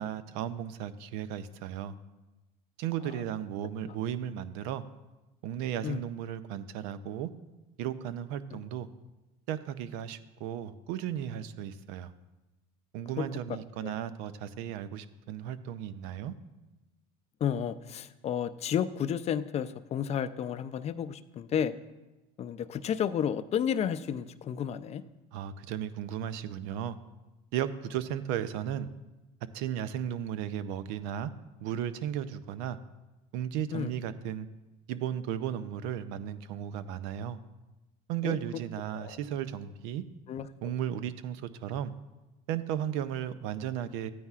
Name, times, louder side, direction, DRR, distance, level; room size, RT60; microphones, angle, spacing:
voice 1, 0.0-1.9 2.8-4.8 5.4-7.3 7.8-8.9 9.5-12.1 12.9-16.4 25.3-27.0 27.5-28.9 29.5-31.3 31.6-32.8 33.3-34.5 34.9-37.4 38.1-40.0 40.6-41.9 42.5-44.1, right 10 dB, 75° right, 14 dB, 0.6 m, -35 dB
voice 2, 17.4-21.7 22.4-25.0 33.7-33.9 38.2-38.4 39.0-39.1 40.3-40.5, left 8 dB, 35° left, 13 dB, 0.4 m, -32 dB
13.5 x 9.3 x 2.4 m, 1.1 s
supercardioid pair, 90°, 19 cm